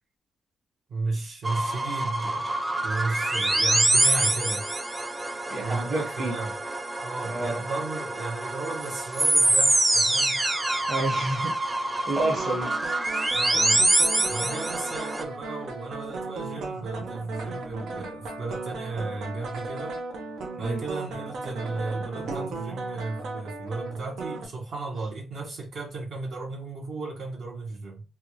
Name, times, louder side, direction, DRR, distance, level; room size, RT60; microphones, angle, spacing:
voice 1, 0.9-2.5 2.8-4.7 5.6-6.6 7.0-10.4 13.3-13.8 14.3-20.0 20.6-28.0, right 3 dB, 65° right, 1.2 m, -34 dB
sound 1, 1.4-15.2, right 2 dB, 15° right, 0.4 m, -25 dB
voice 2, 5.5-6.3 7.3-7.6 10.9-11.5 12.0-12.7 20.5-20.8, right 2 dB, 35° right, 1.2 m, -29 dB
sound 2, 12.2-24.5, right 3 dB, 85° right, 0.8 m, -36 dB
3.5 x 2.3 x 2.9 m
cardioid pair, 135°, 0 cm